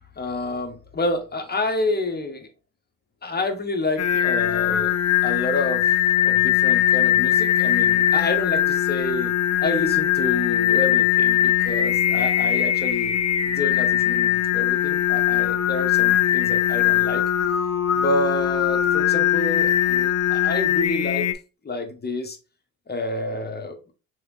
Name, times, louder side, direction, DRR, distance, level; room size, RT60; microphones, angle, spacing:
voice 1, 0.2-2.5 3.2-4.9 5.2-9.3 9.6-13.1 13.5-17.2 17.9-21.3 21.6-22.4 22.9-23.8, left 2 dB, 25° left, 1.1 m, -28 dB
Singing, 4.0-21.3, left 11 dB, 45° left, 0.6 m, -21 dB
3.3 x 3.2 x 3.0 m
supercardioid pair, 55°, 38 cm